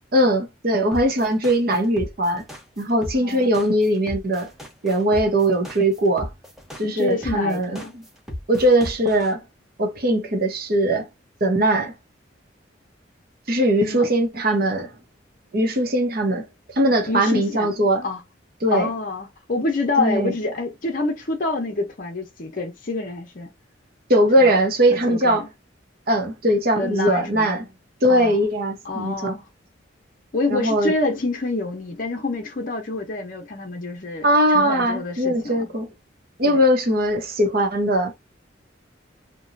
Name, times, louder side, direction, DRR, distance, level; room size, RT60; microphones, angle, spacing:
voice 1, 0.1-2.4 2.8-4.5 4.8-6.3 6.8-8.0 8.5-9.4 9.8-11.1 11.4-11.9 13.5-14.9 15.5-16.4 16.8-18.1 18.6-18.9 20.0-20.3 24.1-25.4 26.1-27.7 28.0-29.4 30.5-30.9 34.2-35.9 36.4-38.1, right 1 dB, 50° right, 0.9 m, -20 dB
sound 1, 0.9-9.3, left 1 dB, ahead, 0.7 m, -35 dB
voice 2, 3.2-3.6 6.8-7.9 13.9-14.1 17.1-17.7 18.0-18.2 18.7-23.5 24.4-24.5 24.9-25.5 26.8-27.5 28.1-28.4 28.8-29.5 30.3-35.6 36.4-36.6, left 3 dB, 45° left, 0.7 m, -27 dB
2.9 x 2.2 x 2.5 m
head